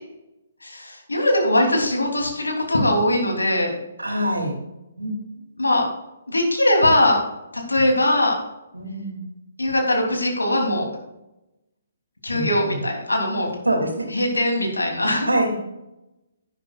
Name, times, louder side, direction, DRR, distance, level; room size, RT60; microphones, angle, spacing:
voice 1, 0.6-3.8 5.6-5.8 6.3-7.2 7.7-8.4 9.6-10.9 12.2-13.5 14.1-15.3, left 1 dB, 85° left, 1 dB, 3.0 m, -21 dB
voice 2, 4.0-4.5 5.0-5.2 8.7-9.2 12.3-12.8 13.6-14.1 15.3-15.6, right 1 dB, 90° right, 2 dB, 2.7 m, -24 dB
11.0 x 10.5 x 2.4 m, 0.93 s
figure-of-eight pair, 135°, 0 cm